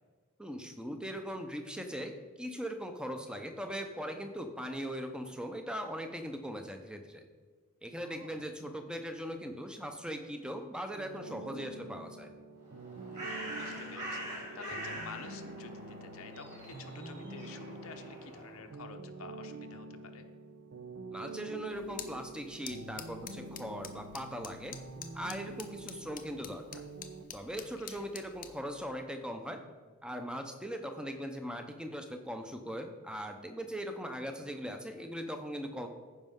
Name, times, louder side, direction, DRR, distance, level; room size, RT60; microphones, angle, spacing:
voice 1, 0.4-2.1 2.4-7.2 7.8-12.3 21.1-24.7 25.1-26.8 27.3-29.6 30.0-35.9, equal, 5° right, 5 dB, 0.7 m, -40 dB
voice 2, 8.0-8.5 13.1-20.2 27.5-28.1, left 4 dB, 75° left, 5 dB, 0.8 m, -50 dB
sound 1, 11.0-27.2, right 2 dB, 65° right, 0.6 m, -47 dB
Bird, 12.6-18.7, right 1 dB, 35° right, 2.8 m, -44 dB
sound 2, 21.7-28.6, left 9 dB, 40° left, 0.6 m, -49 dB
14.5 x 5.3 x 3.7 m, 1.5 s
head